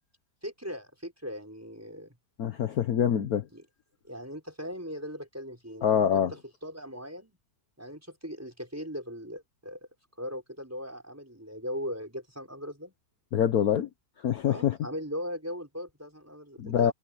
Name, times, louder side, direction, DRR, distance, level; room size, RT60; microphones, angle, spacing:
voice 1, 0.4-2.1 3.5-3.6 4.1-7.4 7.8-9.8 10.2-12.9 14.5-16.9, equal, 10° right, 6.4 m, -39 dB
voice 2, 2.4-3.5 5.8-6.3 13.3-13.9 14.2-14.8 16.6-16.9, left 9 dB, 60° left, 1.4 m, -25 dB
omnidirectional pair, 1.9 m